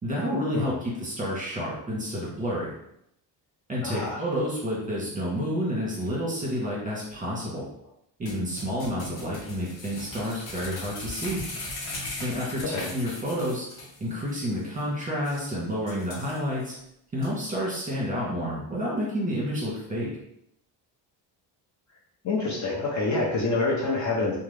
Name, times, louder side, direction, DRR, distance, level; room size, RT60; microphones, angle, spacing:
voice 1, 0.0-2.7 3.7-7.7 8.2-11.4 12.2-13.6 14.0-16.8 17.1-20.1, equal, 15° right, -5 dB, 1.4 m, -29 dB
voice 2, 3.8-4.2 12.7-12.9 22.2-24.4, left 3 dB, 40° left, -3 dB, 0.7 m, -26 dB
sound 1, 8.3-14.0 14.3-14.4 14.8-14.9 15.2-15.4 15.9-16.7 17.2-17.3, left 2 dB, 60° left, 1.0 m, -38 dB
2.9 x 2.2 x 3.4 m, 0.76 s
cardioid pair, 105°, 44 cm